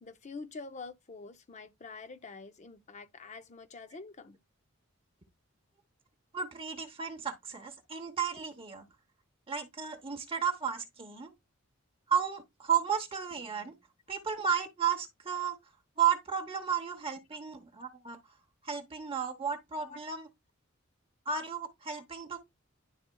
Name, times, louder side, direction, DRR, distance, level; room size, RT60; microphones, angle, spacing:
voice 1, 0.0-4.4 19.9-20.0, left 4 dB, 35° left, 0.6 m, -46 dB
voice 2, 6.3-8.8 9.5-11.3 12.1-13.8 14.1-15.6 16.0-18.2 18.6-20.3 21.3-22.4, right 7 dB, 25° right, 0.9 m, -33 dB
10.5 x 4.2 x 2.2 m
head